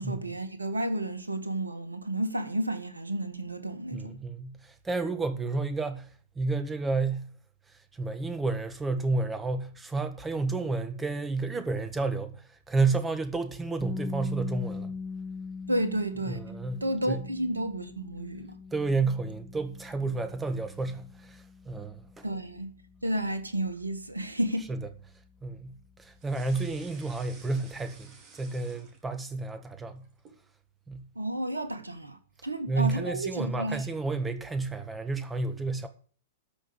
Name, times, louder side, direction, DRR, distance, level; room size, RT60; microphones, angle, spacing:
voice 1, 0.0-4.2 15.7-18.6 22.2-22.7 23.0-24.7 31.1-33.8, right 1 dB, 80° right, 1.5 m, -32 dB
voice 2, 3.9-6.1 6.3-7.3 7.9-14.9 16.3-17.2 18.7-22.2 24.7-24.9 25.4-30.0 30.9-31.0 32.7-35.9, right 3 dB, 10° right, 1.7 m, -31 dB
sound 1, 13.8-25.6, left 5 dB, 5° left, 0.6 m, -42 dB
sound 2, 26.2-29.4 29.7-30.4, right 4 dB, 30° right, 3.1 m, -53 dB
13.0 x 5.5 x 8.0 m
figure-of-eight pair, 105°, 0 cm